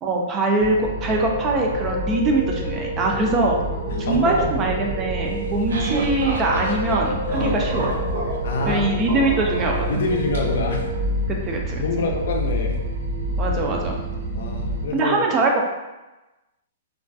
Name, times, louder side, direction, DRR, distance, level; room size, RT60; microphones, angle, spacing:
voice 1, 0.0-3.6 4.0-7.9 8.7-9.9 11.3-11.8 13.4-14.0 14.9-15.6, right 2 dB, 25° right, 0 dB, 0.3 m, -22 dB
sound 1, 0.6-14.9, right 1 dB, 65° right, 0.9 m, -28 dB
sound 2, 0.7-11.0, left 1 dB, 40° left, 0.7 m, -33 dB
voice 2, 3.9-4.5 7.4-7.7 8.4-8.9 9.9-10.9 11.8-12.8 14.3-15.3, left 3 dB, 70° left, 2 dB, 0.4 m, -26 dB
sound 3, 5.3-10.4, right 2 dB, 80° right, 0.5 m, -31 dB
2.3 x 2.2 x 2.5 m, 1.1 s
hypercardioid pair, 150°, 0 cm